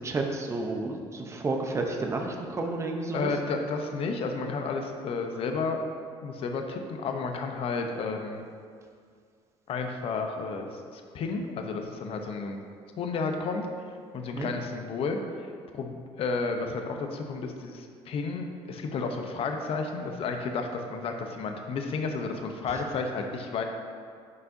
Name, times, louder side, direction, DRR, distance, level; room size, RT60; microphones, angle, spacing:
voice 1, 0.0-3.3 14.4-14.5, right 3 dB, 25° right, 2 dB, 0.8 m, -31 dB
voice 2, 3.1-5.8 6.2-8.4 9.7-10.7 10.9-12.6 13.0-13.7 14.1-15.2 15.7-23.6, left 4 dB, 55° left, 4 dB, 0.8 m, -32 dB
9.4 x 5.5 x 2.7 m, 2.1 s
cardioid pair, 100°, 12 cm